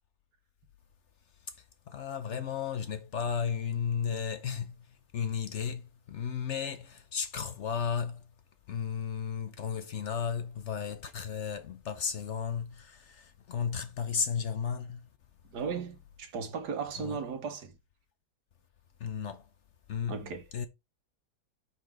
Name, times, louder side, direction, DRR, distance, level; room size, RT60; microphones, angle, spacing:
voice 1, 1.9-4.8 5.1-8.2 8.7-15.0 17.0-17.2 19.0-19.5 19.9-20.2 20.5-20.7, left 7 dB, 60° left, 0.8 m, -34 dB
voice 2, 15.5-17.7 20.1-20.4, right 5 dB, 90° right, 1.7 m, -36 dB
5.8 x 5.7 x 3.4 m
omnidirectional pair, 1.7 m